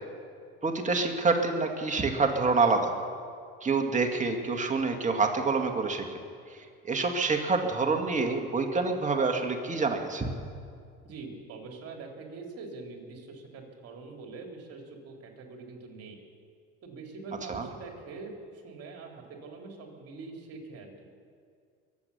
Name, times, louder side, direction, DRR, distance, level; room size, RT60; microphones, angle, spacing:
voice 1, 0.6-2.9 3.6-6.1 6.8-10.3 17.5-17.7, right 4 dB, 25° right, 4 dB, 2.1 m, -27 dB
voice 2, 11.0-16.2 16.8-18.3 18.6-20.9, right 4 dB, 55° right, 2 dB, 3.3 m, -44 dB
22.5 x 8.4 x 6.9 m, 2.2 s
supercardioid pair, 85°, 30 cm